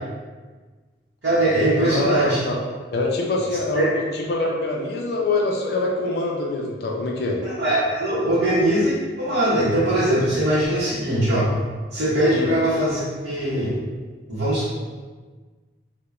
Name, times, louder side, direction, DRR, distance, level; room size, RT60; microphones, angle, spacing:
voice 1, 1.2-2.4 3.7-3.9 7.4-11.5 11.9-13.7 14.3-14.7, right 1 dB, 85° right, -11 dB, 0.7 m, -21 dB
voice 2, 1.8-2.6 2.9-7.4 12.3-12.5, left 2 dB, 60° left, 0 dB, 0.3 m, -24 dB
2.9 x 2.0 x 2.3 m, 1.4 s
head